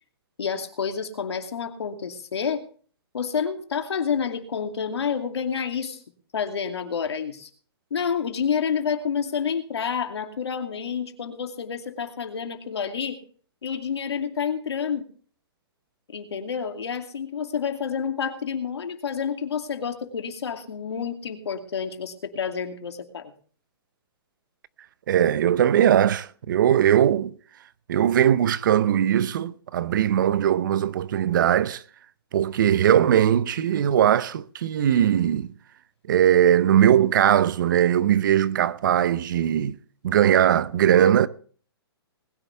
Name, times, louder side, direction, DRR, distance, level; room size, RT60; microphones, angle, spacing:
voice 1, 0.4-2.6 3.1-6.0 6.3-7.5 7.9-13.2 13.6-15.1 16.1-23.3, left 7 dB, 90° left, 2.5 m, -29 dB
voice 2, 25.1-27.3 27.9-31.8 32.3-35.5 36.1-39.8 40.0-41.3, right 10 dB, 50° right, 0.6 m, -20 dB
20.0 x 10.5 x 3.3 m
hypercardioid pair, 165°, 13 cm